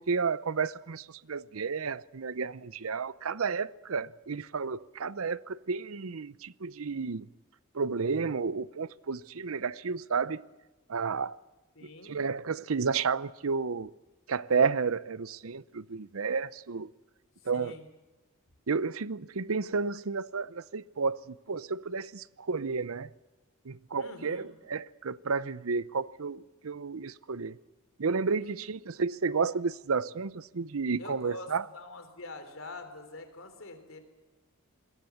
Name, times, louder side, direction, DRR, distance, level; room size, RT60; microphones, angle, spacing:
voice 1, 0.0-7.3 7.7-10.4 10.9-11.4 11.8-13.9 14.3-16.9 17.5-17.8 18.7-23.1 23.6-27.6 28.0-31.7, right 5 dB, 85° right, 0.7 m, -31 dB
voice 2, 11.8-12.1 17.5-17.9 24.0-24.5 28.4-28.5 31.0-34.0, left 2 dB, 70° left, 3.7 m, -45 dB
27.0 x 21.5 x 7.2 m
head